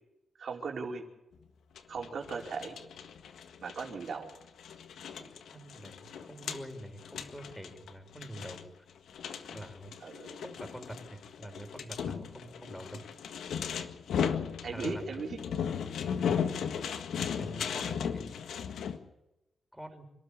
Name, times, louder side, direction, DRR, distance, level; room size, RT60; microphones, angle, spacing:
voice 1, 0.4-1.0 1.9-2.8 3.6-4.3 10.0-10.4 14.6-15.4, right 5 dB, 65° right, 1 dB, 4.7 m, -37 dB
sound 1, 1.8-19.0, left 7 dB, 80° left, 1.7 m, -37 dB
voice 2, 5.5-8.6 9.5-9.9 10.4-13.0 14.7-15.2 16.2-16.4 17.3-18.3 19.7-20.1, right 1 dB, 5° left, 6 dB, 5.6 m, -45 dB
28.0 x 13.0 x 8.8 m, 0.93 s
cardioid pair, 65°, 0 cm